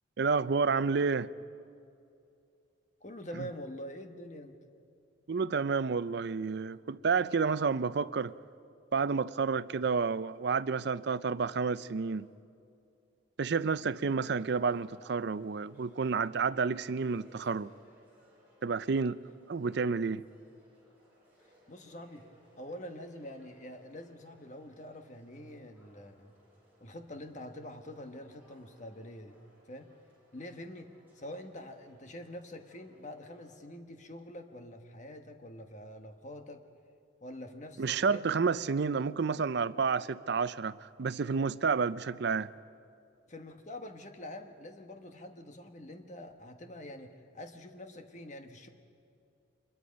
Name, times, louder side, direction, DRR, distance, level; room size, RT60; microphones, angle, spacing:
voice 1, 0.2-1.3 5.3-8.3 8.9-12.3 13.4-17.7 18.6-19.2 19.5-20.2 37.8-42.5, right 5 dB, 55° right, 0.5 m, -30 dB
voice 2, 3.0-4.6 21.7-22.2 22.6-26.3 26.8-29.4 29.7-29.9 30.3-36.6 37.2-38.3 43.3-48.7, left 1 dB, 35° left, 1.3 m, -45 dB
sound 1, 14.3-33.6, equal, 10° right, 7.2 m, -65 dB
25.0 x 22.0 x 5.2 m
head